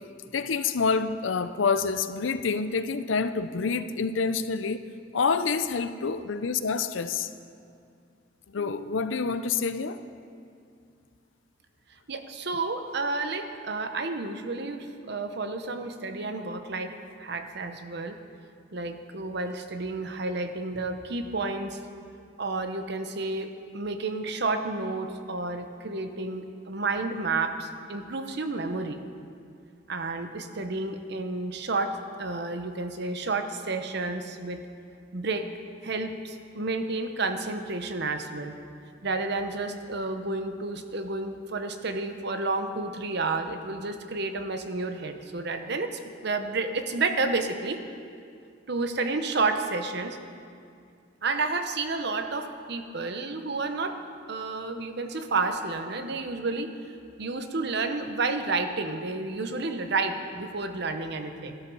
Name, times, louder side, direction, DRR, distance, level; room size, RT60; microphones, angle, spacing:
voice 1, 0.3-4.8 5.1-7.3 8.5-10.0, left 5 dB, 85° left, 11 dB, 0.6 m, -27 dB
voice 2, 12.1-18.2 18.7-21.8 22.4-29.0 29.9-34.7 35.1-35.5 35.8-38.6 39.0-47.8 48.7-50.2 51.2-54.0 54.3-56.7 57.2-61.6, right 3 dB, 60° right, 7 dB, 0.9 m, -31 dB
13.0 x 12.5 x 5.5 m, 2.4 s
head